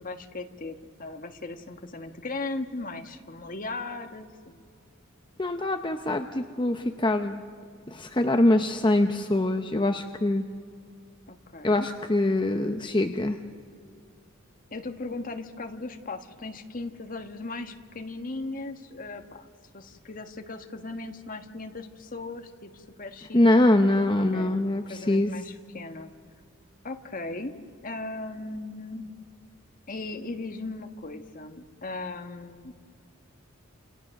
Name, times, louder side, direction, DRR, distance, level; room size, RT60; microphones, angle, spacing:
voice 1, 0.0-4.6 11.3-11.9 14.7-19.5 19.7-23.4 24.2-26.1 26.8-29.1 29.9-32.7, left 2 dB, 40° left, 6 dB, 1.4 m, -38 dB
voice 2, 5.4-7.4 7.9-10.5 11.6-13.4 23.3-25.3, left 1 dB, 20° left, 5 dB, 0.8 m, -23 dB
28.5 x 27.5 x 6.5 m, 2.2 s
head